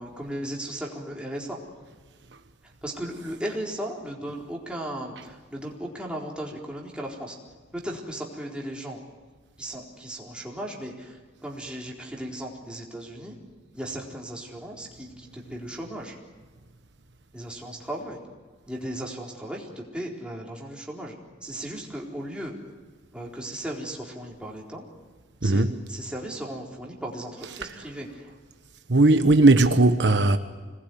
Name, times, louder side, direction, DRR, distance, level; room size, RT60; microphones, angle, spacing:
voice 1, 0.0-1.6 2.6-7.4 7.7-9.0 9.6-13.4 13.7-16.2 17.3-18.2 18.7-21.1 21.4-22.6 23.1-24.8 25.4-28.3, right 1 dB, 5° right, 4.2 m, -36 dB
voice 2, 25.4-25.7 28.9-30.4, right 2 dB, 70° right, 1.2 m, -17 dB
26.0 x 20.0 x 9.4 m
head